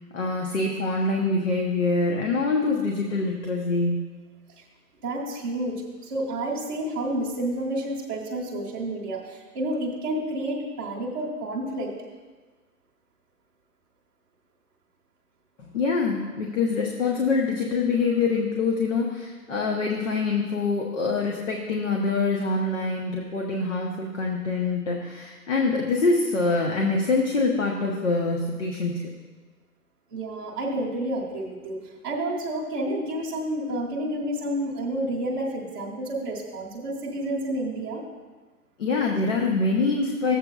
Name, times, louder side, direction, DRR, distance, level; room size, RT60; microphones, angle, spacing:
voice 1, 0.1-4.0 15.7-29.1 38.8-40.4, left 3 dB, 50° left, 0 dB, 1.0 m, -25 dB
voice 2, 5.0-11.9 30.1-38.0, right 1 dB, 15° right, -7 dB, 1.0 m, -30 dB
13.5 x 7.7 x 2.3 m, 1.3 s
hypercardioid pair, 165°, 47 cm